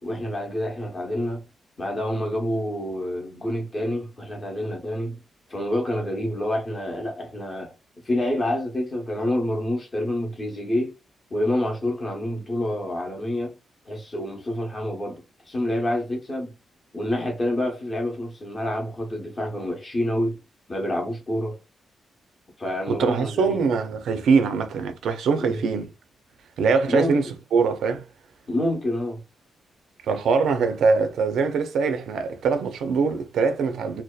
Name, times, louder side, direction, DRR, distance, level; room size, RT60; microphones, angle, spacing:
voice 1, 0.0-1.4 1.8-5.2 5.5-7.7 8.0-10.9 11.3-13.5 13.9-16.5 16.9-20.4 20.7-21.6 22.6-23.6 25.4-25.6 26.9-27.2 28.5-29.2, left 1 dB, 25° left, 0.7 m, -27 dB
voice 2, 22.9-25.9 26.6-27.2 27.5-28.0 30.1-34.0, right 5 dB, 85° right, 0.4 m, -22 dB
2.7 x 2.1 x 2.2 m
wide cardioid pair, 170°, 0 cm